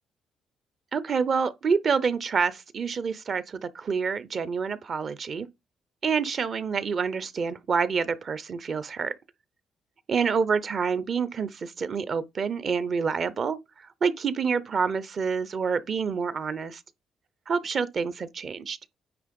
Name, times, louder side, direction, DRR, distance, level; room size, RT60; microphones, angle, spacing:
voice 1, 0.9-5.5 6.0-9.1 10.1-16.8 17.5-18.8, right 5 dB, 35° right, 0.5 m, -27 dB
9.3 x 3.2 x 5.2 m
cardioid pair, 175°, 0 cm